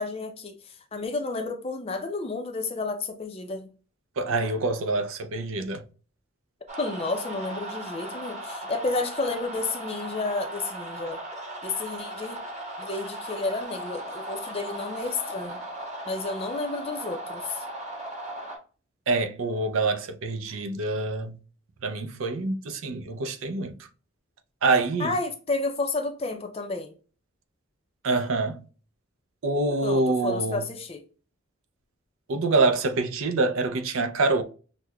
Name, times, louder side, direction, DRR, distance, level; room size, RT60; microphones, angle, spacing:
voice 1, 0.0-3.7 6.8-11.2 11.6-12.4 12.8-15.6 16.1-17.6 25.0-26.9 29.8-31.0, left 3 dB, 25° left, 0.4 m, -31 dB
voice 2, 4.2-5.8 19.1-21.3 21.8-23.7 24.6-25.1 28.0-28.6 29.4-30.6 32.3-34.4, right 3 dB, 70° right, 0.5 m, -26 dB
sound 1, 6.7-18.6, right 1 dB, 30° right, 1.1 m, -37 dB
6.1 x 2.1 x 2.3 m
head